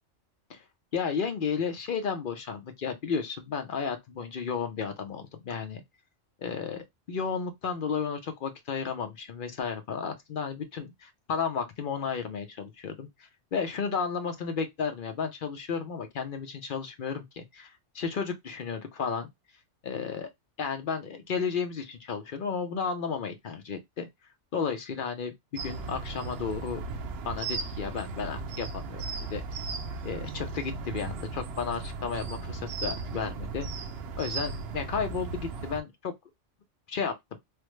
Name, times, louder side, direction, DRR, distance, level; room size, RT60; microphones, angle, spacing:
voice 1, 0.9-5.8 6.4-13.1 13.5-19.3 19.8-20.3 20.6-24.1 24.5-26.8 27.2-29.0 29.3-29.4 30.0-33.7 34.2-36.1 36.9-37.1, left 6 dB, 55° left, 0.7 m, -33 dB
sound 1, 25.6-35.8, right 4 dB, 65° right, 0.7 m, -36 dB
3.2 x 2.1 x 3.0 m
omnidirectional pair, 1.2 m